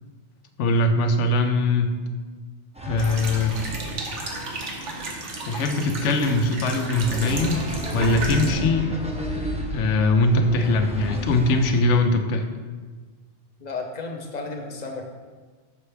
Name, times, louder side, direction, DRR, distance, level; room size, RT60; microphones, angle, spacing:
voice 1, 0.6-2.0 2.9-3.5 5.5-7.6 7.9-9.0 9.7-12.4, left 2 dB, 85° left, 6 dB, 0.9 m, -21 dB
sound 1, 2.7-11.8, equal, 10° right, 0.4 m, -33 dB
sound 2, 3.0-8.5, right 2 dB, 90° right, 1.3 m, -33 dB
voice 2, 13.6-15.0, left 3 dB, 45° left, 2 dB, 0.7 m, -33 dB
6.0 x 5.6 x 3.3 m, 1.4 s
omnidirectional pair, 1.2 m